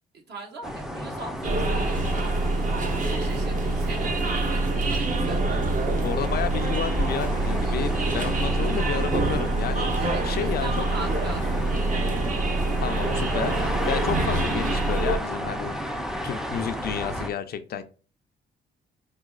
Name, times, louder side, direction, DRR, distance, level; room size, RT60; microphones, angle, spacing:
voice 1, 0.1-5.9 7.6-8.0 10.0-10.3 10.6-11.7, right 3 dB, 60° right, 1 dB, 1.1 m, -41 dB
sound 1, 0.6-17.3, equal, ahead, 0.5 m, -33 dB
sound 2, 1.4-15.2, right 2 dB, 40° right, 0.8 m, -26 dB
voice 2, 6.0-10.8 12.8-15.8 16.2-17.8, left 8 dB, 55° left, 10 dB, 0.4 m, -31 dB
4.8 x 2.2 x 2.3 m, 0.36 s
cardioid pair, 90°, 20 cm